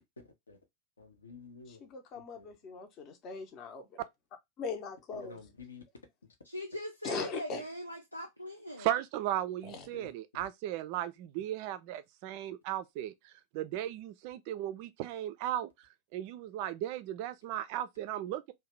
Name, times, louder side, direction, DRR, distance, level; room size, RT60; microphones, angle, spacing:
voice 1, 1.0-2.7 5.1-5.8 9.7-10.1, left 3 dB, 70° left, 0.7 m, -51 dB
voice 2, 1.7-4.0 4.6-5.4 7.0-7.6 9.6-9.9, left 5 dB, 35° left, 0.7 m, -40 dB
voice 3, 6.4-8.9, equal, 90° left, 0.4 m, -41 dB
voice 4, 8.8-13.1 13.5-15.7 16.1-18.5, right 12 dB, 45° right, 0.4 m, -36 dB
2.7 x 2.2 x 3.1 m
figure-of-eight pair, 90°, 0 cm